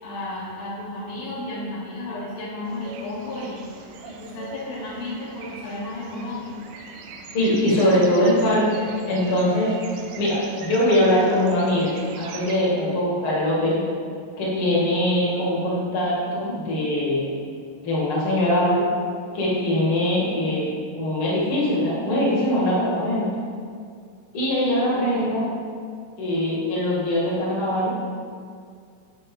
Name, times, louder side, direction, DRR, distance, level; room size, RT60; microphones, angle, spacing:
voice 1, 0.0-3.6 4.0-6.5 24.9-25.3, left 1 dB, 60° left, -9 dB, 2.4 m, -33 dB
sound 1, 2.6-12.6, right 3 dB, 80° right, 2.7 m, -41 dB
voice 2, 7.3-9.7 10.2-13.9 14.4-17.3 17.8-18.9 19.3-23.4 24.3-25.4 26.2-28.0, left 1 dB, 45° left, -6 dB, 2.0 m, -22 dB
11.0 x 6.1 x 3.8 m, 2.2 s
omnidirectional pair, 5.0 m